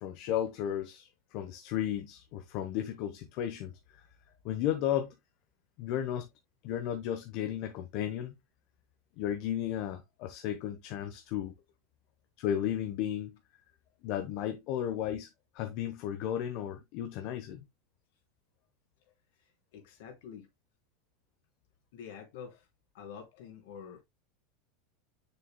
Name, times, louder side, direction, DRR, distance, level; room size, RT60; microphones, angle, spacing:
voice 1, 0.0-4.0 4.4-5.1 5.8-6.3 6.6-8.3 9.2-11.5 12.4-13.4 14.0-15.3 15.5-17.6, left 10 dB, 55° left, 1.0 m, -34 dB
voice 2, 19.4-20.5 21.9-22.7 22.9-24.0, left 7 dB, 75° left, 3.5 m, -47 dB
7.0 x 6.8 x 2.2 m
supercardioid pair, 110°, 0 cm